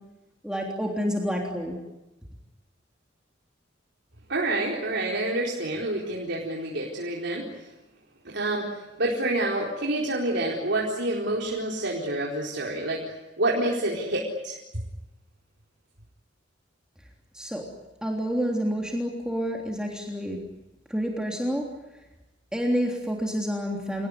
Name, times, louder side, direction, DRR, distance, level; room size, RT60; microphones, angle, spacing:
voice 1, 0.4-1.8 17.3-17.6 18.0-20.4 20.9-21.7 22.5-24.1, equal, 5° right, 0 dB, 3.4 m, -28 dB
voice 2, 4.3-7.4 8.2-14.6, right 2 dB, 65° right, -3 dB, 4.4 m, -28 dB
27.5 x 19.0 x 9.8 m, 1.0 s
head